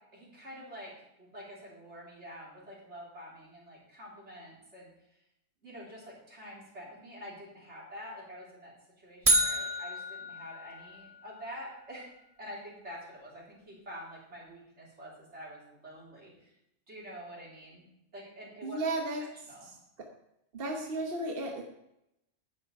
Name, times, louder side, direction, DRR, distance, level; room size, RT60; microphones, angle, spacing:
voice 1, 0.1-0.9 1.2-4.9 5.6-12.1 12.4-16.5 16.9-17.9 18.1-18.8 19.4-19.7, equal, 75° right, -6 dB, 4.2 m, -47 dB
sound 1, 9.3-11.4, right 1 dB, 30° right, 1.3 m, -29 dB
voice 2, 18.6-19.2 20.0-20.1 20.5-21.6, right 2 dB, 55° right, 1 dB, 1.3 m, -33 dB
10.5 x 8.5 x 4.8 m, 0.84 s
omnidirectional pair, 1.2 m